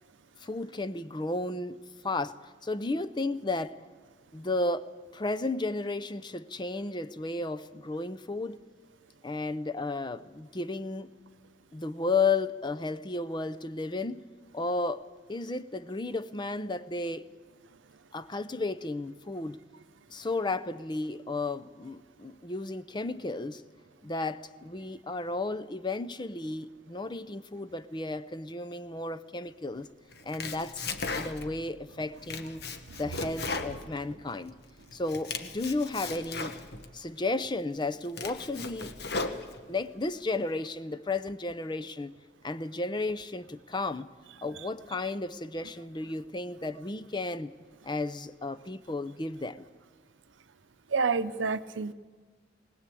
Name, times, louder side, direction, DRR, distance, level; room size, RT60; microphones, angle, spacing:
voice 1, 0.4-3.8 4.3-8.6 9.2-11.1 11.7-14.3 14.5-17.3 18.1-19.6 20.1-23.6 24.0-29.9 30.2-32.6 33.0-34.6 34.9-36.6 36.9-38.9 39.7-42.1 42.4-44.1 44.4-47.5 47.8-49.6, left 3 dB, 25° left, 12 dB, 0.6 m, -33 dB
Domestic sounds home sounds, 30.1-31.6 32.0-34.5 34.9-36.9 37.4-37.5 37.9-39.9, left 3 dB, 55° left, 1.2 m, -37 dB
voice 2, 50.9-51.9, right 4 dB, 80° right, 13 dB, 0.7 m, -28 dB
21.0 x 19.0 x 8.4 m, 1.5 s
head